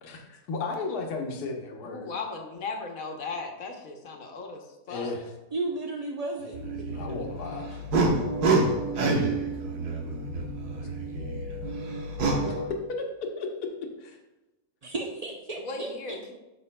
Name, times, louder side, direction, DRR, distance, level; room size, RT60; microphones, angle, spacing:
voice 1, 0.0-2.1 4.9-5.3 6.6-7.8 12.5-12.6 13.4-13.7 14.0-14.2, left 4 dB, 80° left, 2 dB, 1.5 m, -35 dB
voice 2, 1.8-5.1 15.6-16.3, left 4 dB, 65° left, 3 dB, 1.4 m, -37 dB
voice 3, 5.5-6.6 14.8-15.9, right 2 dB, 55° right, 0 dB, 0.4 m, -33 dB
sound 1, 6.5-12.6, right 2 dB, 85° right, 1.6 m, -28 dB
10.5 x 6.6 x 2.2 m, 1.0 s
omnidirectional pair, 1.6 m